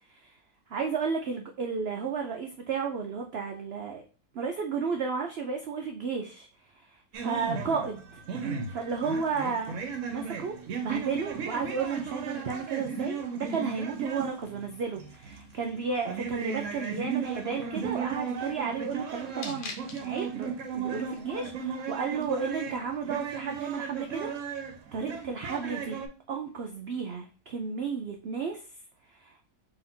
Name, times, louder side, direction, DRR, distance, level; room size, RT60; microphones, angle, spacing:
voice 1, 0.7-4.0 4.3-6.5 6.7-8.2 8.7-9.8 10.1-10.5 10.8-19.7 20.0-24.3 24.9-26.0 26.3-28.6 29.1-29.4, right 5 dB, 90° right, 3 dB, 0.5 m, -33 dB
sound 1, 7.1-26.1, right 6 dB, 60° right, 0.9 m, -36 dB
sound 2, 8.7-22.5, left 4 dB, 70° left, 1.4 m, -53 dB
3.8 x 2.8 x 4.2 m, 0.37 s
omnidirectional pair, 1.7 m